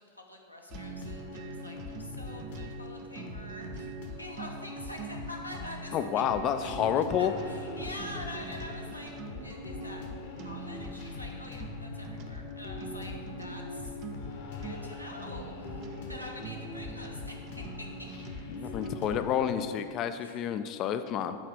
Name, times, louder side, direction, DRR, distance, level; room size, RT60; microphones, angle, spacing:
voice 1, 0.0-3.9 4.2-6.1 6.6-9.1 9.4-10.0 10.4-13.1 13.4-14.0 14.6-18.1 20.2-20.4, left 1 dB, 90° left, 0 dB, 1.0 m, -45 dB
sound 1, 0.7-19.7, left 3 dB, 55° left, 1.0 m, -41 dB
sound 2, 0.7-19.3, right 8 dB, 40° right, 0.4 m, -46 dB
voice 2, 5.9-7.3 18.5-21.4, left 9 dB, 35° left, 10 dB, 0.3 m, -29 dB
8.6 x 3.3 x 6.3 m, 2.2 s
figure-of-eight pair, 90°, 0 cm